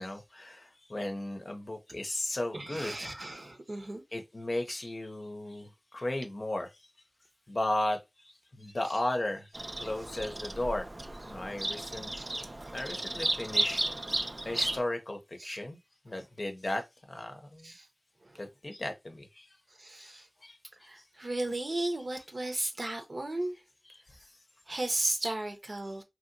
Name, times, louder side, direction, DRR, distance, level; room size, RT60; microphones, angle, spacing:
voice 1, 0.0-3.3 4.1-6.7 7.5-9.5 9.8-10.9 11.2-12.1 12.7-13.8 14.4-15.8 16.0-17.7 18.3-19.5 20.1-20.6 22.5-22.6 23.8-24.0, left 1 dB, 60° left, 0.6 m, -35 dB
voice 2, 2.5-4.0 12.1-12.3 15.4-15.6 17.6-17.9 18.2-18.4 19.8-20.3 20.9-23.6 24.7-26.0, right 2 dB, 60° right, 0.7 m, -35 dB
Bird vocalization bird call bird song, 9.5-14.8, right 1 dB, 40° right, 0.3 m, -34 dB
2.9 x 2.8 x 2.6 m
wide cardioid pair, 40°, 0 cm